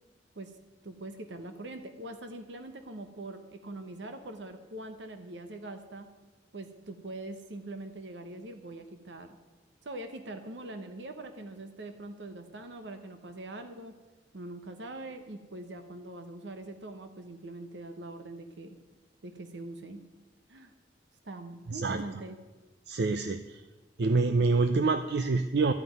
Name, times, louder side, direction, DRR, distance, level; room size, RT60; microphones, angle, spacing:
voice 1, 0.8-6.1 6.5-9.3 9.8-14.0 14.3-18.8 19.2-20.0 20.5-20.7 21.2-22.4, right 2 dB, 80° right, 7 dB, 0.9 m, -43 dB
voice 2, 21.7-22.0 22.9-23.5 24.0-25.7, right 3 dB, 65° right, 9 dB, 0.5 m, -26 dB
13.0 x 5.8 x 9.2 m, 1.2 s
head